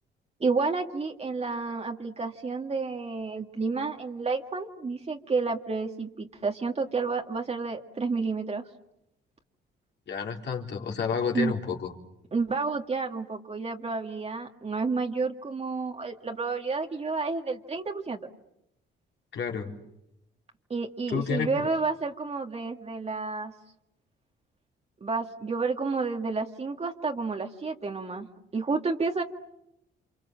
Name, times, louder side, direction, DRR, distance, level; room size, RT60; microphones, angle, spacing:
voice 1, 0.4-8.6 11.3-11.5 12.3-18.2 20.7-23.5 25.0-28.3 28.5-29.2, right 4 dB, 30° right, 2 dB, 2.0 m, -30 dB
voice 2, 10.1-11.9 19.3-19.7 21.1-21.7, left 6 dB, 65° left, 1 dB, 3.9 m, -30 dB
29.5 x 26.5 x 7.6 m, 0.84 s
cardioid pair, 90°, 20 cm